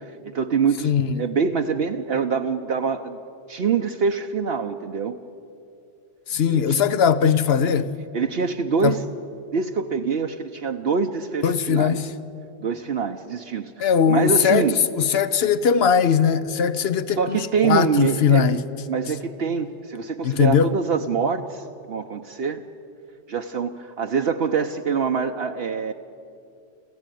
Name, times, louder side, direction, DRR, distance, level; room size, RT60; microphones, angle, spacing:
voice 1, 0.0-3.2 3.5-5.2 6.5-6.6 8.1-9.0 9.5-12.0 12.6-14.7 17.2-18.6 18.9-22.6 23.3-25.9, right 6 dB, 65° right, 1.0 m, -25 dB
voice 2, 0.8-1.2 6.3-7.9 8.8-8.9 11.4-12.1 13.8-18.6 20.2-20.7, left 7 dB, 65° left, 1.1 m, -20 dB
27.0 x 15.0 x 9.2 m
omnidirectional pair, 1.1 m